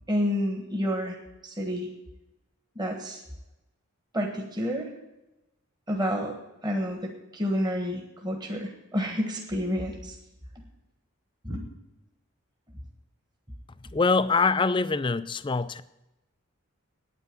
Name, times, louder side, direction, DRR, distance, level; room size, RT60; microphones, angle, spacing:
voice 1, 0.1-1.2 1.4-1.9 2.7-3.2 4.1-4.9 5.9-6.3 6.6-10.1 11.4-11.6, equal, 20° right, 1.4 m, -29 dB
voice 2, 13.9-15.8, left 4 dB, 20° left, 0.4 m, -24 dB
9.2 x 9.2 x 9.0 m
head